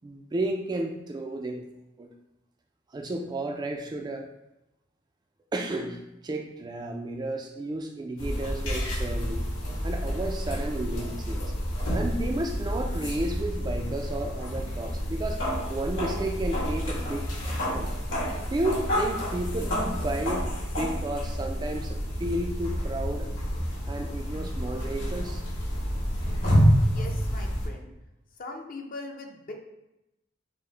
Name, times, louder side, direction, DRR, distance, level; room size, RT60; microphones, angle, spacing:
voice 1, 0.0-1.6 2.0-2.1 2.9-4.3 5.5-9.5 9.8-11.5 11.9-15.4 15.7-17.9 18.5-20.5 20.7-23.3 23.9-25.4, right 1 dB, 20° right, 3 dB, 0.3 m, -32 dB
sound 1, 8.2-27.7, equal, 85° left, 1.4 m, -29 dB
voice 2, 26.8-27.9 28.4-29.5, left 2 dB, 45° left, 3 dB, 0.6 m, -40 dB
5.3 x 2.0 x 3.2 m, 0.92 s
head